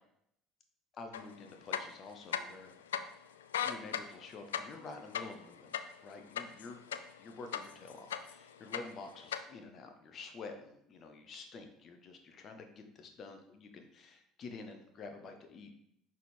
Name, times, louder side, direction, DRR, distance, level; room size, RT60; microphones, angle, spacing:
voice 1, 0.9-2.9 3.6-6.8 7.2-15.8, left 3 dB, 45° left, 6 dB, 1.0 m, -49 dB
sound 1, 1.1-1.2 1.6-2.6 2.9-3.0 3.4-7.2 7.5-8.4 8.7-9.4, left 9 dB, 85° left, 0.3 m, -37 dB
6.1 x 3.7 x 4.4 m, 0.75 s
hypercardioid pair, 70°, 0 cm